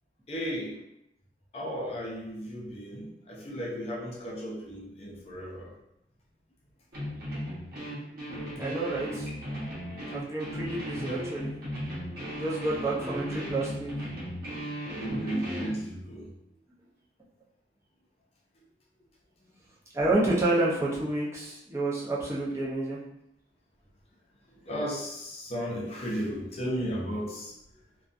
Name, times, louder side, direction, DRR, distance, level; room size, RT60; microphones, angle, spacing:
voice 1, 0.3-0.8 1.5-5.7 15.0-16.3 24.6-27.5, equal, 35° left, -2 dB, 0.5 m, -34 dB
sound 1, 6.9-15.8, equal, 55° right, 0.9 m, -36 dB
voice 2, 8.6-9.3 10.1-11.6 12.3-13.9 19.9-23.0, right 2 dB, 15° right, -7 dB, 0.6 m, -29 dB
2.5 x 2.2 x 2.5 m, 0.83 s
head